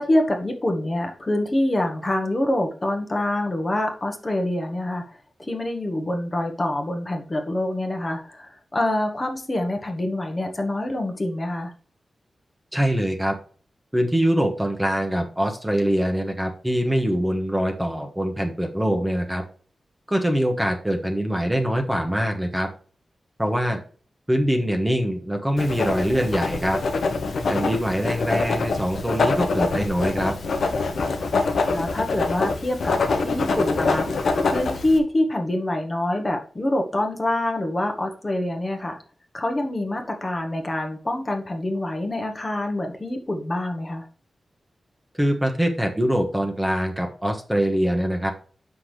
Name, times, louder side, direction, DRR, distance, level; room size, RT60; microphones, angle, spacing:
voice 1, 0.0-11.7 31.7-32.9 33.2-39.0 39.3-44.1, left 1 dB, 25° left, 3 dB, 1.1 m, -26 dB
voice 2, 12.7-13.4 13.9-19.4 20.1-22.7 23.4-23.8 24.3-26.8 27.5-30.3 45.1-48.3, equal, 5° right, 3 dB, 1.1 m, -23 dB
Writing, 25.6-35.0, left 3 dB, 80° left, 1.0 m, -25 dB
7.6 x 5.8 x 3.2 m, 0.42 s
wide cardioid pair, 145°, 0 cm